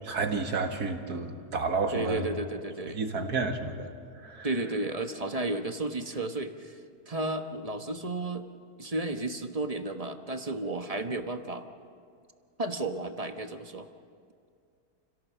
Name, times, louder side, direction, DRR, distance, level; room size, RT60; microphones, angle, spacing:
voice 1, 0.0-2.3 2.9-4.5, right 4 dB, 90° right, 4 dB, 2.3 m, -31 dB
voice 2, 1.9-3.0 4.4-6.8 7.1-8.4 8.8-11.7 12.6-13.9, right 2 dB, 25° right, 6 dB, 1.1 m, -33 dB
29.5 x 17.5 x 7.4 m, 2.3 s
omnidirectional pair, 1.6 m